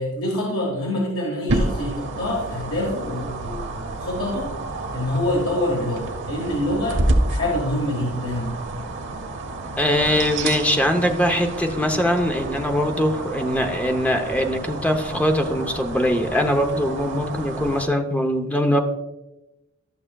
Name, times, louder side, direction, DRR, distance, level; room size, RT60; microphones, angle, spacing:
voice 1, 0.0-4.5 4.9-8.5, left 1 dB, 80° left, -2 dB, 1.6 m, -26 dB
sound 1, 1.5-17.9, right 2 dB, 60° right, 0.9 m, -29 dB
voice 2, 9.8-18.8, equal, 5° left, 4 dB, 0.7 m, -22 dB
12.0 x 6.3 x 2.3 m, 0.96 s
head